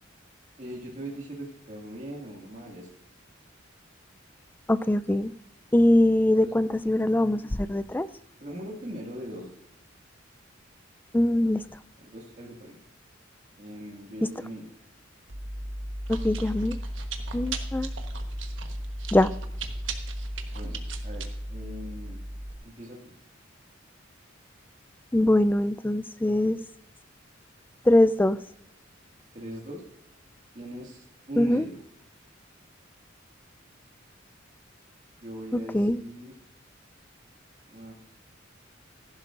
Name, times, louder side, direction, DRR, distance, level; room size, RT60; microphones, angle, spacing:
voice 1, 0.6-2.9 6.4-6.6 8.4-9.5 12.0-12.8 13.6-14.7 20.5-22.2 22.6-23.1 29.3-29.8 30.5-31.8 35.2-36.3 37.7-37.9, right 1 dB, 40° right, -2 dB, 2.0 m, -40 dB
voice 2, 4.7-5.3 5.7-8.1 11.1-11.6 16.1-16.8 17.3-17.9 19.1-19.3 25.1-26.6 27.9-28.4 31.4-31.6 35.7-36.0, left 1 dB, 10° left, 14 dB, 0.3 m, -22 dB
Chewing mastication, 15.3-22.5, right 1 dB, 75° right, 1.2 m, -34 dB
15.0 x 11.5 x 2.5 m, 0.74 s
head